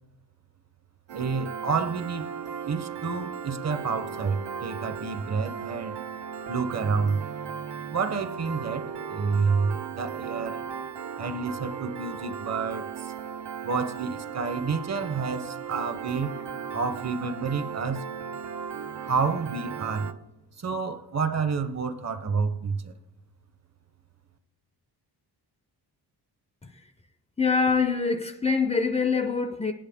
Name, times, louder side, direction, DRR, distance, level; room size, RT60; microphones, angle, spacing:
voice 1, 1.1-2.3 2.6-6.0 6.5-7.2 7.9-10.7 11.2-13.1 13.6-16.4 16.7-18.0 19.0-20.1 20.6-22.9, right 5 dB, 40° right, 0.7 m, -29 dB
Piano, 1.1-20.1, right 7 dB, 90° right, 0.9 m, -36 dB
voice 2, 27.4-29.7, left 5 dB, 15° left, 0.4 m, -25 dB
29.5 x 10.0 x 3.5 m
wide cardioid pair, 165°, 42 cm